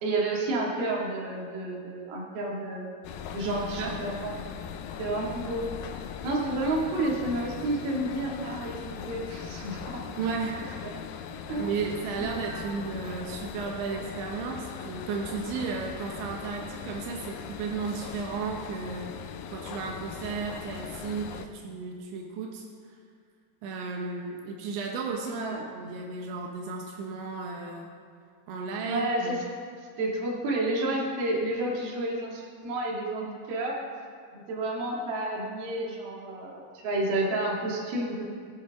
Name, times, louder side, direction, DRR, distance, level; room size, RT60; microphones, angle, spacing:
voice 1, 0.0-2.9 3.3-4.4 5.0-5.7 6.2-10.2 10.8-10.9 11.5-11.7 12.2-12.7 25.2-25.6 28.8-29.4 30.0-33.8 34.3-38.3, right 2 dB, 60° right, -3 dB, 3.9 m, -30 dB
sound 1, 3.0-21.5, left 8 dB, 85° left, 2.1 m, -40 dB
voice 2, 3.4-4.0 10.2-11.0 11.6-19.1 19.5-22.7 23.6-25.4 25.7-27.9 28.5-29.4, right 4 dB, 85° right, 0 dB, 3.4 m, -34 dB
23.0 x 10.5 x 3.6 m, 2.2 s
omnidirectional pair, 5.1 m